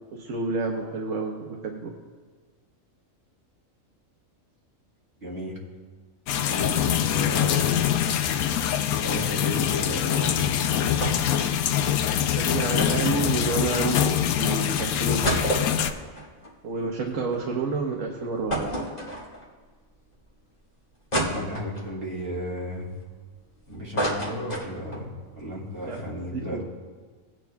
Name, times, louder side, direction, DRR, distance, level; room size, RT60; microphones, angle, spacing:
voice 1, 0.0-1.9 12.2-15.5 16.6-18.7 25.8-26.0 26.3-26.6, right 4 dB, 65° right, 0 dB, 1.3 m, -29 dB
voice 2, 5.2-5.6 6.5-7.8 8.7-10.6 21.2-22.9 23.7-25.1 25.4-26.6, equal, 40° right, -4 dB, 2.7 m, -34 dB
sound 1, 6.3-15.9, left 10 dB, 90° left, 1.1 m, -24 dB
sound 2, 11.0-11.4 11.7-11.8 12.8-14.0 14.6-14.7 15.0-17.4 17.8-17.9 18.5-19.6 20.2-20.3 21.1-22.0 22.5-23.5 23.7-25.1 25.4-25.5 25.8-26.0, right 1 dB, 30° left, 1.9 m, -30 dB
18.5 x 9.0 x 2.3 m, 1.5 s
omnidirectional pair, 1.5 m